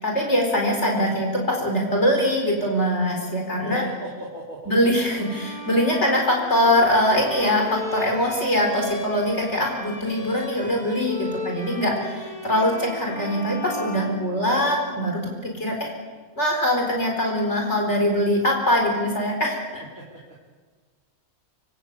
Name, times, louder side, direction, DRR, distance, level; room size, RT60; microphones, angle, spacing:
voice 1, 0.0-3.8 4.7-15.9 16.4-19.8, equal, 50° left, 1 dB, 4.8 m, -22 dB
voice 2, 3.6-4.7, equal, 70° right, -4 dB, 3.9 m, -34 dB
Bowed string instrument, 5.1-14.8, left 1 dB, 35° right, 5.3 m, -36 dB
25.5 x 23.5 x 8.3 m, 1.5 s
omnidirectional pair, 1.5 m